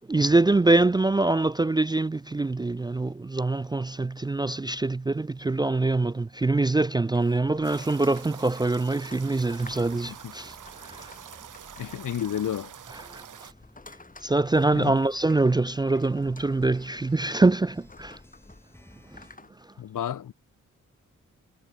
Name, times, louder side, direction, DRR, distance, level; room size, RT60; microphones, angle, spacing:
voice 1, 0.1-10.6 10.8-11.1 13.1-13.5 14.2-18.2 19.1-19.2, right 2 dB, 15° right, 0.4 m, -24 dB
sound 1, 2.1-19.5, left 3 dB, 25° left, 2.0 m, -54 dB
sound 2, 7.6-13.5, right 9 dB, 75° right, 1.4 m, -45 dB
sound 3, 9.1-19.4, left 1 dB, 5° left, 2.9 m, -55 dB
voice 2, 11.8-12.7 14.7-15.0 19.8-20.3, left 10 dB, 80° left, 1.5 m, -31 dB
cardioid pair, 50°, 31 cm